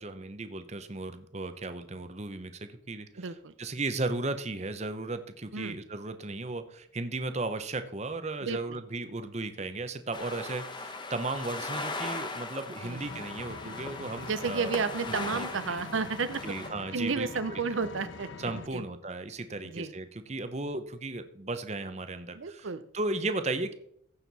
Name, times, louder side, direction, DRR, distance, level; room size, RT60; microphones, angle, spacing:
voice 1, 0.0-3.3 3.6-14.7 15.1-15.8 16.4-17.6 18.4-22.7 22.9-23.7, right 2 dB, 35° right, 10 dB, 0.8 m, -35 dB
voice 2, 3.2-3.5 5.5-5.8 8.4-8.8 12.8-13.0 14.3-16.4 16.9-18.3 18.5-18.8 19.6-19.9 22.3-22.8, right 4 dB, 80° right, 12 dB, 0.7 m, -32 dB
sound 1, 10.1-16.7, left 3 dB, 25° left, 1.0 m, -39 dB
Vehicle, 13.0-18.7, left 4 dB, 75° left, 0.8 m, -44 dB
15.5 x 6.6 x 4.1 m, 0.69 s
head